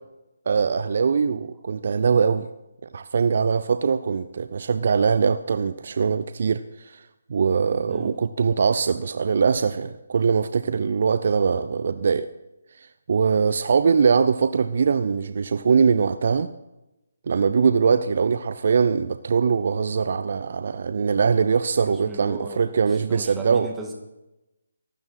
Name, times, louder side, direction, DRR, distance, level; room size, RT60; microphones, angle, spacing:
voice 1, 0.5-2.5 2.9-7.0 7.3-12.3 12.8-16.5 17.3-23.7, right 5 dB, 50° right, 12 dB, 0.6 m, -22 dB
voice 2, 7.9-8.2 17.8-18.0 21.8-23.9, right 3 dB, 10° right, 1 dB, 2.1 m, -38 dB
23.0 x 12.5 x 4.3 m, 0.97 s
figure-of-eight pair, 145°, 0 cm